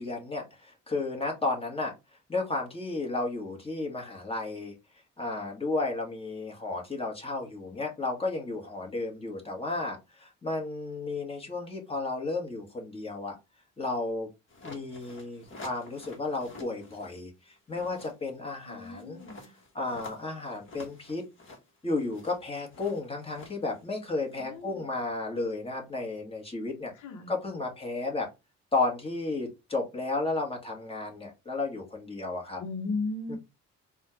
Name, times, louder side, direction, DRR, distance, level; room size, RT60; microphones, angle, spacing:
voice 1, 0.0-1.9 2.3-4.7 5.2-13.3 13.8-14.3 14.6-19.2 19.7-21.2 21.8-26.9 27.3-28.3 28.7-32.6 33.3-33.4, left 3 dB, 20° left, 1.5 m, -33 dB
sound 1, 14.5-17.2 17.6-24.6, left 2 dB, 40° left, 1.3 m, -49 dB
voice 2, 18.7-19.5 24.4-24.8 26.9-27.3 32.6-33.3, left 3 dB, 90° left, 0.9 m, -36 dB
4.2 x 2.4 x 3.1 m
cardioid pair, 90°, 30 cm